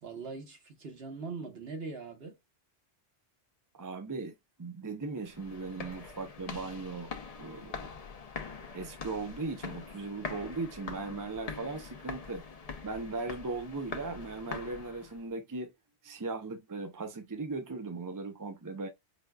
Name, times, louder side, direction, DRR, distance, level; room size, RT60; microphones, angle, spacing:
voice 1, 0.0-2.4, right 4 dB, 65° right, 1.3 m, -41 dB
voice 2, 3.7-7.1 7.4-7.9 8.7-12.5 12.8-15.7 16.0-18.9, right 3 dB, 35° right, 0.3 m, -38 dB
Library Foyer Steps, 5.2-15.3, left 5 dB, 45° left, 0.6 m, -43 dB
5.0 x 2.2 x 2.2 m
omnidirectional pair, 1.1 m